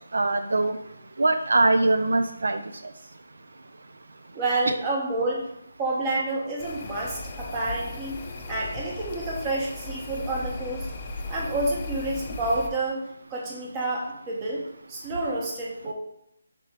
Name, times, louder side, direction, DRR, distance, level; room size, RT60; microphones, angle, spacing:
voice 1, 0.1-0.7 1.2-2.6, right 2 dB, 80° right, 8 dB, 0.3 m, -22 dB
voice 2, 4.3-5.5 5.8-8.2 8.5-10.9 11.3-13.0 13.3-15.9, right 2 dB, 20° right, -3 dB, 0.9 m, -29 dB
sound 1, 6.6-12.7, left 2 dB, 30° left, 0.5 m, -36 dB
3.7 x 3.0 x 4.5 m, 0.75 s
hypercardioid pair, 165°, 0 cm